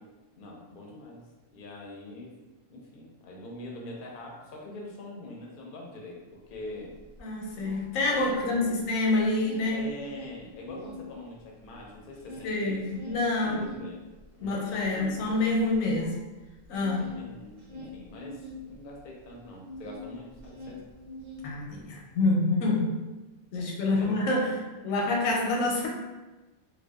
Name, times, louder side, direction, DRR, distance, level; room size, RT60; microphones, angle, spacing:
voice 1, 0.3-1.2 1.5-2.3 2.7-6.9 8.1-8.8 9.7-12.8 13.4-14.0 14.4-14.6 14.9-15.2 16.7-20.8 23.9-24.1 24.4-24.6, left 1 dB, 60° left, -1 dB, 0.6 m, -43 dB
sound 1, 6.5-6.6 6.9-8.9 9.2-11.0 11.4-20.1 20.3-21.9, left 1 dB, 70° right, 1.0 m, -45 dB
voice 2, 7.2-9.8 12.4-13.6 14.4-16.2 16.7-17.0 21.4-23.0 23.5-25.9, left 2 dB, 90° left, -1 dB, 1.0 m, -27 dB
2.6 x 2.1 x 2.2 m, 1.2 s
omnidirectional pair, 1.3 m